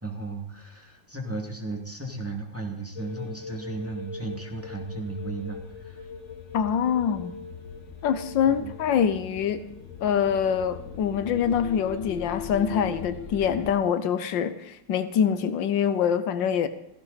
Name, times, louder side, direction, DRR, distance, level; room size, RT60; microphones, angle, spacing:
voice 1, 0.0-6.1 8.5-8.7, right 3 dB, 5° right, 2.2 m, -35 dB
sound 1, 3.0-13.7, left 6 dB, 45° left, 1.2 m, -40 dB
voice 2, 6.5-7.3 8.0-9.7 10.0-16.7, left 8 dB, 85° left, 1.5 m, -25 dB
16.0 x 16.0 x 4.1 m
omnidirectional pair, 2.0 m